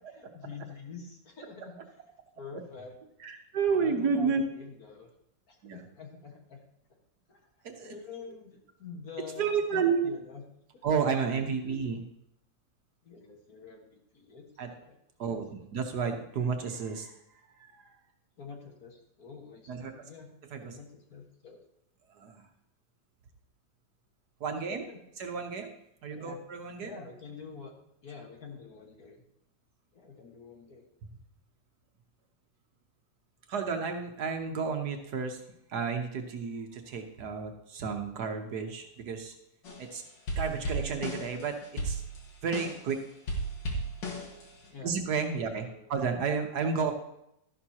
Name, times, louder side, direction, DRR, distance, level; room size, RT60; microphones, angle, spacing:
voice 1, 0.1-2.0 2.4-2.9 3.7-5.1 5.5-6.6 7.3-7.5 7.8-10.5 11.6-11.7 13.0-14.4 14.8-15.3 18.4-20.3 20.6-21.6 24.7-25.0 26.1-26.4 26.8-27.7 28.0-29.2 29.9-30.8 44.7-44.9 45.6-45.9, left 5 dB, 55° left, 1 dB, 2.0 m, -47 dB
voice 2, 3.2-4.4 5.6-5.8 7.6-7.9 9.4-10.1 10.8-12.0 14.6-14.7 15.2-17.1 17.6-17.9 19.7-19.9 20.5-20.8 22.2-22.4 24.4-24.8 25.2-25.7 26.0-26.9 33.5-35.4 35.7-39.3 39.8-40.0 40.4-41.6 41.8-42.0 42.4-43.0 44.8-46.9, right 5 dB, 65° right, 4 dB, 1.5 m, -31 dB
sound 1, 39.7-39.9 40.3-42.9 43.3-44.7, right 1 dB, 75° left, 2.5 m, -34 dB
12.5 x 11.0 x 2.9 m, 0.80 s
omnidirectional pair, 2.0 m